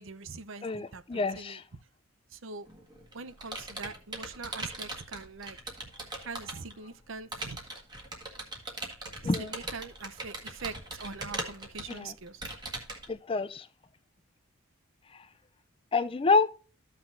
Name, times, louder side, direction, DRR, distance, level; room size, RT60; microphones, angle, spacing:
voice 1, 0.0-1.6 2.3-2.7 3.1-5.6 6.2-7.6 9.2-12.4, right 4 dB, 60° right, 0.7 m, -43 dB
voice 2, 0.6-1.6 9.2-9.5 12.0-12.1 13.1-13.7 15.9-16.5, left 4 dB, 25° left, 0.4 m, -27 dB
Computer keyboard, 2.7-6.7 7.3-13.1, right 2 dB, 20° right, 1.5 m, -40 dB
14.0 x 5.9 x 2.5 m
head